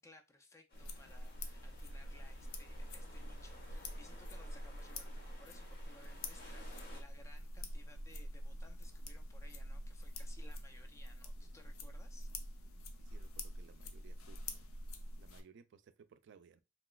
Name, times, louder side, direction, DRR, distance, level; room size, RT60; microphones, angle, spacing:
voice 1, 0.0-12.3, left 2 dB, 15° left, 0.4 m, -61 dB
sound 1, 0.7-15.4, left 1 dB, 80° left, 0.5 m, -46 dB
sound 2, 0.7-7.0, left 1 dB, 50° left, 1.0 m, -58 dB
voice 2, 13.0-14.7 15.2-16.6, right 6 dB, 60° right, 0.3 m, -61 dB
3.0 x 2.9 x 2.3 m
head